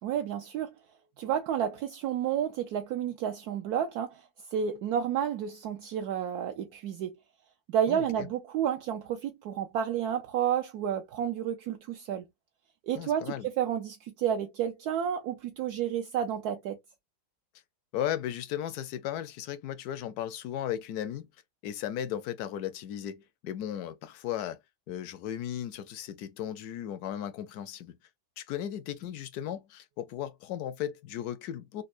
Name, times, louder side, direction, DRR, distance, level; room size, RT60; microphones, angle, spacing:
voice 1, 0.0-0.7 1.2-4.2 4.5-7.1 7.7-12.2 12.8-16.8, right 9 dB, 70° right, 1.1 m, -31 dB
voice 2, 7.9-8.3 12.9-13.5 17.9-21.2 21.6-24.6 24.9-27.9 28.4-31.8, left 11 dB, 70° left, 1.0 m, -36 dB
5.3 x 2.1 x 2.4 m
omnidirectional pair, 1.8 m